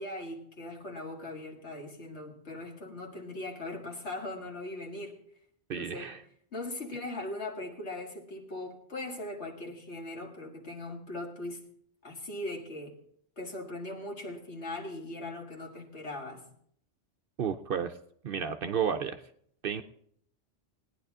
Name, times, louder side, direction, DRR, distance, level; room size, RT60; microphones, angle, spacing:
voice 1, 0.0-5.2 5.7-6.1 6.5-11.7 12.0-13.0 13.4-16.4, left 2 dB, 65° left, 1 dB, 2.1 m, -40 dB
voice 2, 5.7-6.2 17.4-17.9 18.2-19.2 19.6-19.8, right 7 dB, 60° right, 9 dB, 0.7 m, -32 dB
18.0 x 10.0 x 3.6 m, 0.65 s
omnidirectional pair, 1.2 m